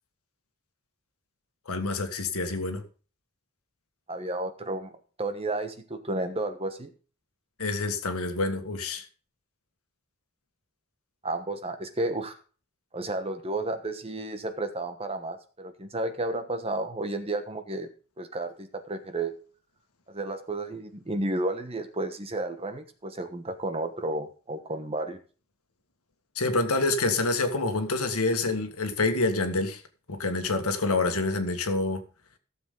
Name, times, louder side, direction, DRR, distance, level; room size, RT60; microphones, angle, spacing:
voice 1, 1.7-2.8 7.6-9.1 26.4-29.8 30.1-32.0, left 3 dB, 80° left, 1.7 m, -27 dB
voice 2, 4.1-6.9 11.2-12.4 12.9-17.9 18.2-19.4 20.1-25.2, right 2 dB, 25° right, 1.2 m, -32 dB
15.5 x 7.2 x 3.8 m
head